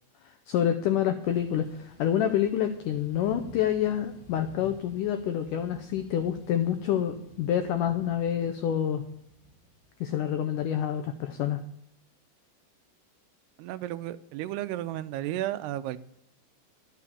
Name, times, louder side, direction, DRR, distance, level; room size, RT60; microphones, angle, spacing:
voice 1, 0.3-9.0 10.0-11.6, left 10 dB, 85° left, 8 dB, 1.8 m, -27 dB
Thunder / Rain, 1.2-10.0, right 1 dB, 60° left, 3.7 m, -52 dB
voice 2, 13.6-16.0, right 14 dB, 85° right, 13 dB, 2.7 m, -33 dB
11.5 x 6.7 x 8.4 m, 0.74 s
omnidirectional pair, 4.6 m